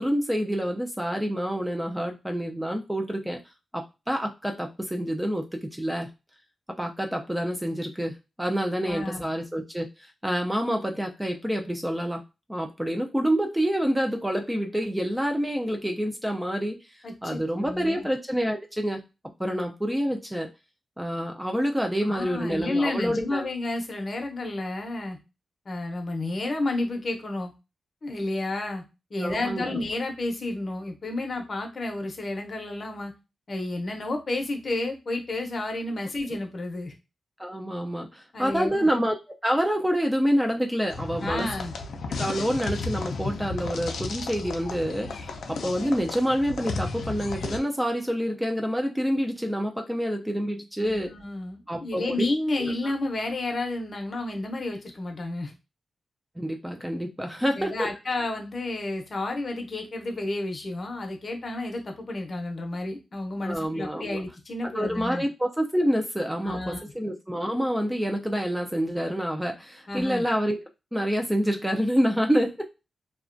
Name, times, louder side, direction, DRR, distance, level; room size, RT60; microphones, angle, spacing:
voice 1, 0.0-3.4 3.7-6.1 6.7-12.2 12.5-16.8 17.2-19.0 19.4-20.5 21.0-23.4 29.2-29.8 37.4-39.2 39.4-41.5 42.2-51.1 51.7-52.3 52.6-52.7 56.4-57.9 63.4-64.2 64.7-70.6 70.9-72.7, equal, 5° right, 3 dB, 0.3 m, -27 dB
voice 2, 8.8-9.3 17.0-18.1 22.1-25.2 25.7-27.5 28.0-28.8 29.1-33.1 33.5-36.9 38.3-38.9 41.2-41.7 50.8-55.5 57.6-65.2 66.4-66.8 69.9-70.3, left 2 dB, 45° left, 4 dB, 0.6 m, -31 dB
sound 1, 40.9-47.6, left 3 dB, 85° left, 0.4 m, -34 dB
2.3 x 2.1 x 2.5 m, 0.26 s
cardioid pair, 95°, 0 cm